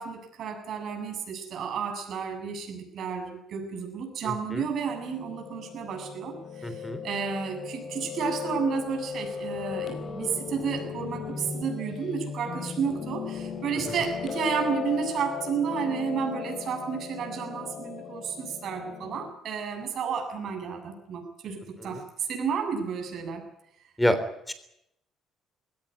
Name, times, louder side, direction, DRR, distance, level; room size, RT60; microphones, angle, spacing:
voice 1, 0.0-23.4, right 6 dB, 55° right, 4 dB, 7.7 m, -32 dB
voice 2, 4.2-4.6 6.6-7.0 21.8-22.0 24.0-24.2 24.5-24.6, equal, 5° left, 11 dB, 3.4 m, -27 dB
Piano, 4.8-19.3, left 6 dB, 40° left, 4.5 m, -37 dB
21.0 x 17.5 x 9.5 m, 0.77 s
cardioid pair, 140°, 0 cm